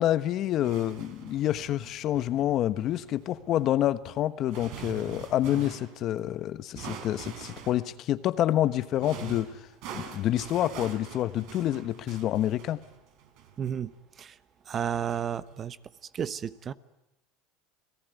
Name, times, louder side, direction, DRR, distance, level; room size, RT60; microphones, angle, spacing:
voice 1, 0.0-9.5 9.9-12.8, left 12 dB, 50° left, 13 dB, 1.1 m, -28 dB
sound 1, 0.6-6.0 6.8-7.9 8.7-13.9 14.9-15.6, right 8 dB, 65° right, 4.0 m, -44 dB
voice 2, 13.6-13.9 14.2-14.4 14.7-15.8 16.1-16.7, right 8 dB, 35° right, 15 dB, 1.0 m, -32 dB
29.5 x 18.0 x 9.4 m, 0.90 s
supercardioid pair, 105°, 0 cm